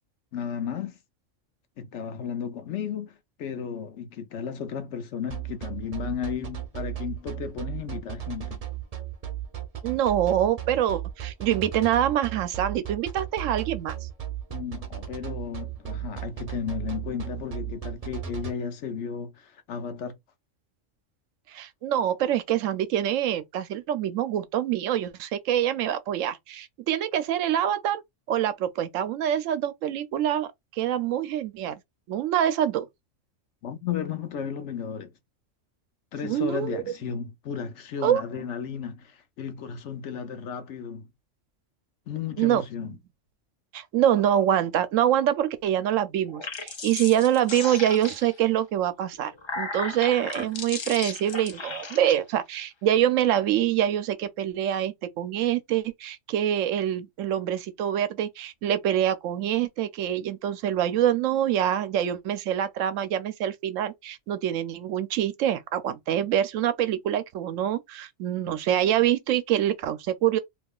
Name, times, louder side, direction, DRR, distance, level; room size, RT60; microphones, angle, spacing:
voice 1, 0.3-1.0 1.8-8.6 14.5-20.1 33.6-35.1 36.1-41.1 42.1-43.0, left 7 dB, 70° left, 1.0 m, -34 dB
sound 1, 5.3-18.5, right 12 dB, 40° right, 0.6 m, -35 dB
voice 2, 9.8-14.0 21.5-28.0 28.3-31.7 32.1-32.9 36.2-36.8 38.0-38.2 42.4-42.6 43.7-70.4, right 11 dB, 85° right, 1.0 m, -25 dB
sound 2, 46.2-48.5 49.1-52.1, left 4 dB, 45° left, 0.3 m, -36 dB
2.8 x 2.3 x 3.5 m
omnidirectional pair, 1.3 m